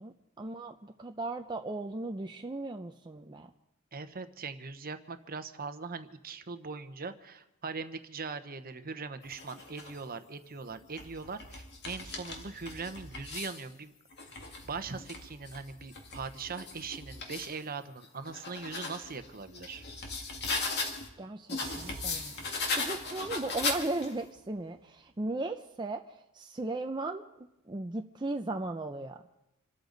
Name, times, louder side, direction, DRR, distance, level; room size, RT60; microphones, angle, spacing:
voice 1, 0.0-3.5 21.2-26.0 26.3-27.2 27.7-29.2, right 2 dB, 20° right, 4 dB, 0.6 m, -37 dB
voice 2, 3.9-13.9 14.3-14.4 14.6-19.8, right 4 dB, 40° right, 10 dB, 1.0 m, -41 dB
sound 1, 9.2-10.0 10.7-13.6 14.1-17.5 18.0-21.1 21.5-24.2, left 3 dB, 50° left, 2.2 m, -38 dB
sound 2, 21.6-25.1, right 4 dB, 65° right, 1.2 m, -52 dB
27.5 x 13.0 x 4.0 m, 0.88 s
head